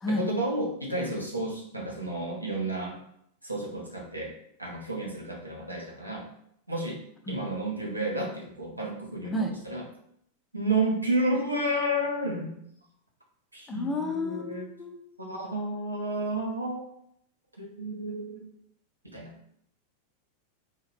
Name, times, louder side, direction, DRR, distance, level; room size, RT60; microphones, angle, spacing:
voice 1, 0.1-3.0 3.4-4.3 4.6-6.3 6.7-9.8 10.5-12.6 13.5-14.6 15.3-16.8 17.6-18.4 19.1-19.3, right 1 dB, 85° right, -2 dB, 0.9 m, -31 dB
voice 2, 13.7-15.0, left 1 dB, 20° left, 3 dB, 0.6 m, -30 dB
4.0 x 2.7 x 3.3 m, 0.72 s
figure-of-eight pair, 90°, 0 cm